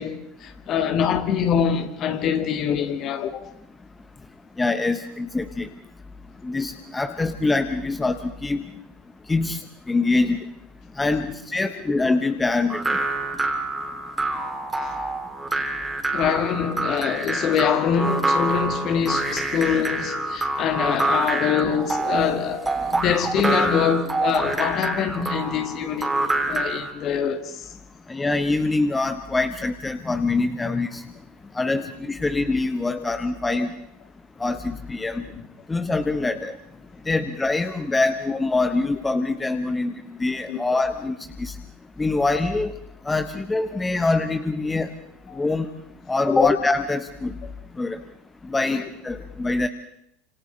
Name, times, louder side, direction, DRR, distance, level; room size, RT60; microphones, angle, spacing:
voice 1, 0.0-3.5 9.4-9.5 11.1-11.2 16.1-27.7 33.0-33.1 33.6-33.7 35.3-35.4 40.5-40.6 45.3-45.4 46.3-46.5 48.7-48.8, left 8 dB, 40° left, 2.1 m, -24 dB
voice 2, 4.6-5.7 6.4-8.6 9.3-9.6 9.9-10.4 11.0-13.0 28.1-31.0 31.5-33.7 34.4-35.2 35.7-36.5 37.1-39.9 40.2-41.5 42.0-42.7 43.1-44.9 45.4-45.7 46.1-47.3 47.8-48.0 48.5-49.7, left 3 dB, 15° left, 1.2 m, -24 dB
sound 1, 12.7-26.9, right 2 dB, 10° right, 3.4 m, -26 dB
30.0 x 27.0 x 3.4 m
figure-of-eight pair, 75°, 0 cm